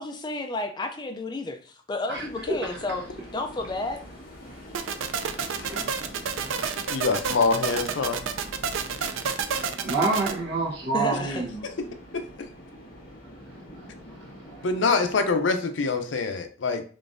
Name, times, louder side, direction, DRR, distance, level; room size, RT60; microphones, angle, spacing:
voice 1, 0.0-3.0 3.3-4.0 10.9-11.5, left 2 dB, 20° left, 0.4 m, -31 dB
sound 1, 2.1-15.4, equal, 50° left, 1.6 m, -45 dB
sound 2, 4.7-10.3, right 6 dB, 90° right, 0.4 m, -29 dB
voice 2, 5.6-6.0 9.6-11.6 14.5-14.6, right 3 dB, 60° right, 1.0 m, -28 dB
voice 3, 6.9-8.2 12.1-12.5 14.6-16.8, left 4 dB, 75° left, 0.5 m, -25 dB
3.7 x 3.4 x 2.6 m
head